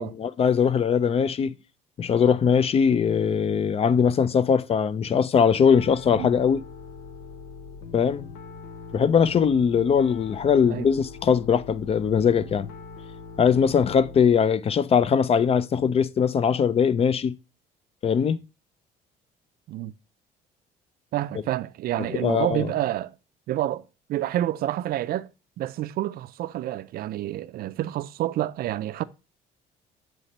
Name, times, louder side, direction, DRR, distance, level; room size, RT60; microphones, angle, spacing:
voice 1, 0.0-1.5 2.0-6.6 7.9-8.3 8.9-12.7 13.4-17.3 18.0-18.4 22.1-22.7, left 7 dB, 35° left, 0.4 m, -21 dB
Piano, 5.7-14.3, left 4 dB, 85° left, 1.0 m, -42 dB
voice 2, 21.1-23.1 23.5-23.8 24.1-25.3 25.6-29.0, right 13 dB, 60° right, 0.4 m, -28 dB
8.2 x 3.3 x 4.1 m
cardioid pair, 110°, 17 cm